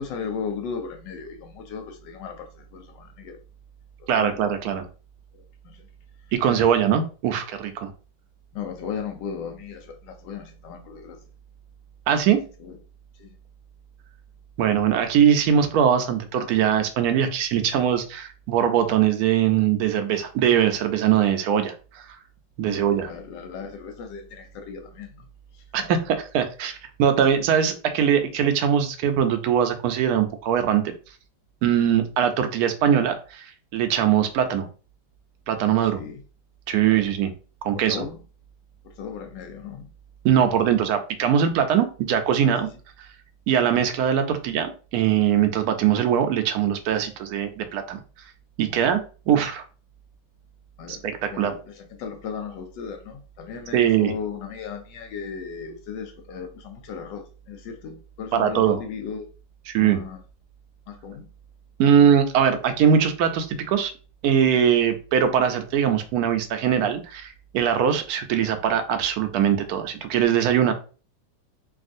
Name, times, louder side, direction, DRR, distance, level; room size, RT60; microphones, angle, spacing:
voice 1, 0.0-3.4 4.1-4.4 4.6-4.8 5.3-5.9 8.5-11.2 12.3-12.8 13.2-13.4 22.7-25.3 25.5-25.9 35.9-36.2 37.0-37.1 37.7-38.2 38.8-39.9 40.4-40.7 48.7-49.0 50.8-59.3 59.8-60.2 60.9-61.3, left 6 dB, 85° left, 1.3 m, -36 dB
voice 2, 4.1-4.8 6.3-7.9 12.1-12.4 14.6-22.0 22.6-23.1 25.7-30.8 31.6-33.5 33.7-34.7 35.5-36.0 36.7-37.3 37.6-38.1 40.2-42.7 43.5-48.0 48.6-49.0 49.3-49.6 51.0-51.5 53.7-54.1 58.3-58.8 59.7-60.0 61.8-63.9 64.2-70.7, right 9 dB, 70° right, 0.9 m, -21 dB
3.4 x 2.4 x 2.5 m
omnidirectional pair, 1.9 m